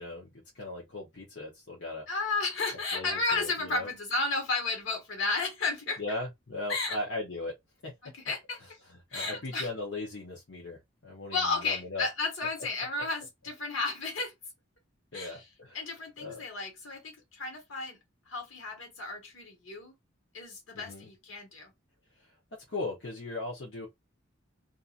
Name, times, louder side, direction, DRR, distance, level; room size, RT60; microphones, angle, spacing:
voice 1, 0.0-2.1 2.9-3.9 6.0-7.5 7.8-7.9 8.9-12.1 15.1-15.8 16.2-16.4 20.7-21.1 22.2-22.3 22.7-23.9, left 2 dB, 60° left, 0.9 m, -38 dB
voice 2, 2.1-6.0 6.7-7.0 8.0-8.6 9.1-9.7 11.3-14.3 15.1-15.4 15.7-18.0 18.2-19.9 20.3-21.7, left 3 dB, 75° left, 1.4 m, -33 dB
2.7 x 2.5 x 2.5 m
head